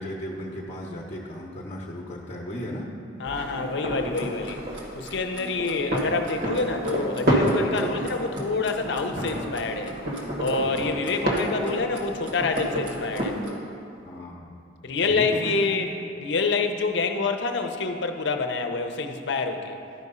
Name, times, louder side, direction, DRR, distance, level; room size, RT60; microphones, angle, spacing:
voice 1, 0.0-2.9 14.0-14.5 15.1-15.6 15.9-16.0, equal, 35° left, -3 dB, 0.8 m, -35 dB
voice 2, 3.2-4.6 4.9-10.0 10.4-13.4 14.8-15.9 16.2-19.8, left 4 dB, 65° left, 6 dB, 0.7 m, -27 dB
sound 1, 3.3-13.4, equal, 50° right, 1.3 m, -29 dB
Clock, 3.9-13.6, right 2 dB, 90° right, 1.6 m, -44 dB
11.5 x 4.8 x 5.5 m, 2.5 s
head